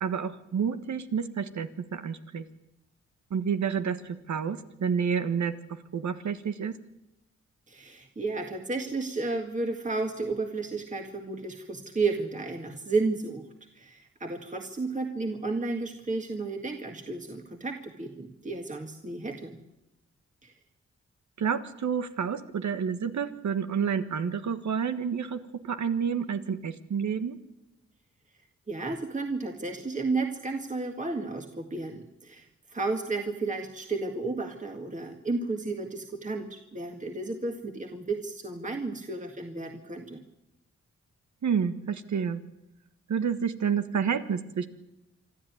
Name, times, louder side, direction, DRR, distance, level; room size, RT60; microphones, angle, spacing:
voice 1, 0.0-2.4 3.3-5.5 5.9-6.7 21.4-25.4 25.6-27.3 41.4-42.4 43.1-44.7, right 7 dB, 75° right, 10 dB, 1.5 m, -29 dB
voice 2, 7.7-13.5 13.7-19.6 20.4-20.5 28.7-40.2, right 3 dB, 25° right, 3 dB, 2.0 m, -32 dB
26.0 x 13.0 x 9.5 m, 0.92 s
cardioid pair, 85°, 29 cm